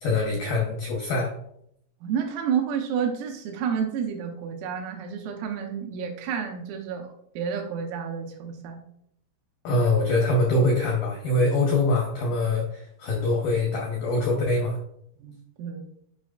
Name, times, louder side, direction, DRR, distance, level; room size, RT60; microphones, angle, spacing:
voice 1, 0.0-1.3 9.6-14.8, left 2 dB, 90° left, -1 dB, 2.0 m, -24 dB
voice 2, 2.0-8.8 15.2-15.9, right 7 dB, 90° right, 1 dB, 3.7 m, -30 dB
10.0 x 5.2 x 2.5 m, 0.72 s
omnidirectional pair, 5.8 m